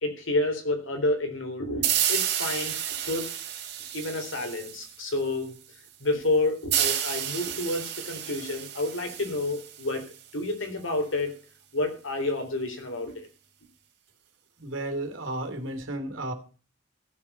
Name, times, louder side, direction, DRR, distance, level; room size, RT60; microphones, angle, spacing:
voice 1, 0.0-2.7 3.0-3.3 3.9-5.5 6.0-11.4 11.7-13.3, left 2 dB, 90° left, 5 dB, 3.8 m, -29 dB
sound 1, 1.8-5.2 6.7-10.2, right 10 dB, 60° right, 2.5 m, -30 dB
voice 2, 14.6-16.3, right 1 dB, 80° right, 6 dB, 2.6 m, -33 dB
15.0 x 7.3 x 5.6 m, 0.38 s
head